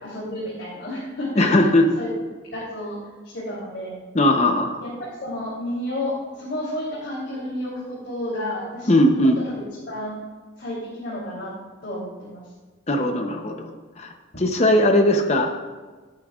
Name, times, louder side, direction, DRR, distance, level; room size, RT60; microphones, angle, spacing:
voice 1, 0.0-1.4 1.9-2.1 2.5-3.0 3.2-4.0 4.8-4.9 5.2-9.2 9.4-10.2 10.6-11.5 11.8-12.4, left 1 dB, 60° left, -7 dB, 3.2 m, -31 dB
voice 2, 1.4-1.9 4.1-4.8 8.9-9.4 12.9-13.7 14.0-15.5, left 1 dB, 35° left, 4 dB, 0.7 m, -19 dB
16.5 x 8.7 x 2.4 m, 1.4 s
head